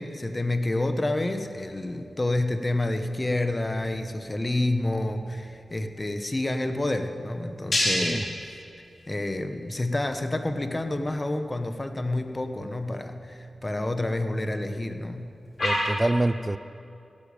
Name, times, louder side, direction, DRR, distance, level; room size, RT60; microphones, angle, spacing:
voice 1, 0.0-8.3 9.1-15.3, left 2 dB, 30° left, 7 dB, 1.1 m, -28 dB
sound 1, 1.1-15.9, left 1 dB, 55° left, 3.6 m, -36 dB
voice 2, 15.6-16.6, right 2 dB, 25° right, 15 dB, 0.5 m, -26 dB
16.5 x 12.5 x 5.1 m, 2.7 s
cardioid pair, 45°, 0 cm